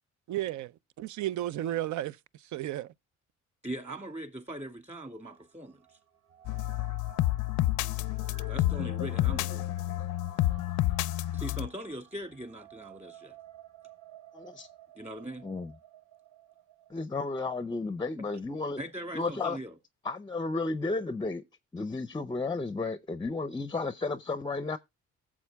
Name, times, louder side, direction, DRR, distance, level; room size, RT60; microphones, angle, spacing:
voice 1, 0.3-0.7 1.0-2.2 2.5-2.9, right 13 dB, 70° right, 0.5 m, -33 dB
voice 2, 3.6-5.8 8.5-9.7 11.3-13.4 15.0-15.5 18.2-18.3 18.8-19.8, right 1 dB, 20° right, 2.1 m, -40 dB
sound 1, 5.2-16.9, right 10 dB, 50° right, 1.5 m, -54 dB
sound 2, 6.4-11.7, left 15 dB, 80° left, 0.5 m, -29 dB
voice 3, 14.3-14.7 15.4-15.7 16.9-18.8 19.1-19.6 20.0-21.4 21.7-24.8, left 3 dB, 15° left, 0.5 m, -33 dB
16.0 x 7.3 x 2.2 m
cardioid pair, 90°, 30 cm